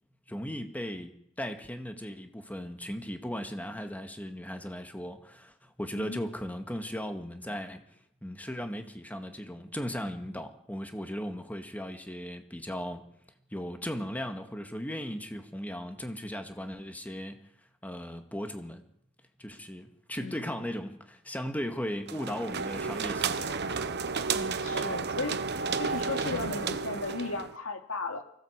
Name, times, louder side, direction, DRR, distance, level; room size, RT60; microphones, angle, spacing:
voice 1, 0.3-7.8 8.2-13.0 13.5-17.4 17.8-18.8 19.4-23.6, equal, 10° left, 6 dB, 1.9 m, -37 dB
voice 2, 20.2-20.5 24.3-25.4 25.7-28.2, left 3 dB, 75° left, 6 dB, 2.6 m, -36 dB
sound 1, 22.1-27.6, right 5 dB, 55° right, 1.2 m, -32 dB
24.5 x 16.5 x 8.1 m, 0.76 s
head